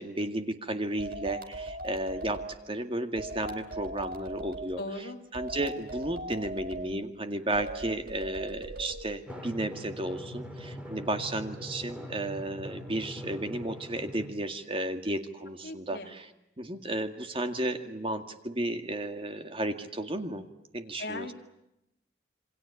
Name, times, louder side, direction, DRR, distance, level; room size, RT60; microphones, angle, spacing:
voice 1, 0.0-4.8 5.3-16.3 16.6-20.4 20.7-21.3, right 1 dB, 30° right, 7 dB, 2.0 m, -33 dB
sound 1, 1.0-2.5 3.2-4.7 5.3-6.9 7.5-9.0, right 1 dB, 55° right, 4.4 m, -39 dB
voice 2, 4.8-5.2 15.6-16.1 21.0-21.3, left 2 dB, 60° left, 3 dB, 3.5 m, -38 dB
Drum, 9.3-14.3, equal, 5° right, 3.7 m, -42 dB
28.0 x 24.5 x 8.5 m, 0.85 s
head